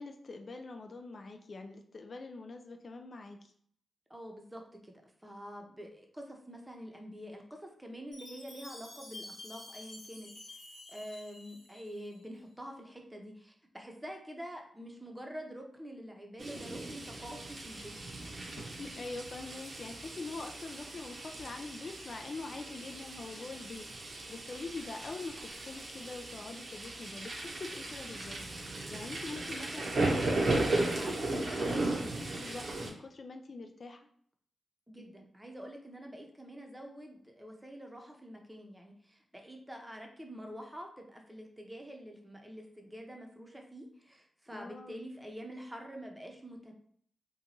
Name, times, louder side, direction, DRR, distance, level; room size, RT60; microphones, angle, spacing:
voice 1, 0.0-3.5 18.6-34.1 44.5-45.1, left 3 dB, 55° left, 4 dB, 0.3 m, -44 dB
voice 2, 4.1-4.9 5.2-10.6 10.9-18.0 34.9-46.7, equal, 15° right, 2 dB, 0.7 m, -46 dB
Chime, 8.1-12.2, left 2 dB, 80° left, 1.2 m, -50 dB
sound 1, 16.4-32.9, right 2 dB, 60° right, 0.6 m, -36 dB
2.7 x 2.2 x 2.8 m, 0.63 s
supercardioid pair, 40°, 0 cm